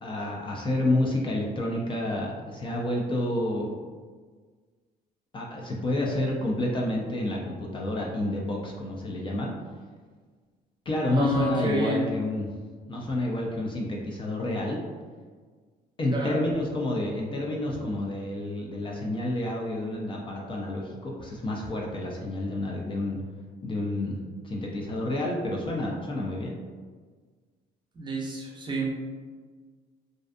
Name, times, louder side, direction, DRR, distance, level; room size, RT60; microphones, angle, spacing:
voice 1, 0.0-3.7 5.3-9.5 10.9-12.5 12.9-14.8 16.0-23.2 23.6-24.1 24.4-26.5, left 1 dB, 30° left, -1 dB, 0.4 m, -29 dB
voice 2, 11.1-12.1 16.1-16.4 27.9-28.9, right 2 dB, 25° right, -2 dB, 0.5 m, -29 dB
2.5 x 2.3 x 2.4 m, 1.5 s
cardioid pair, 110°, 17 cm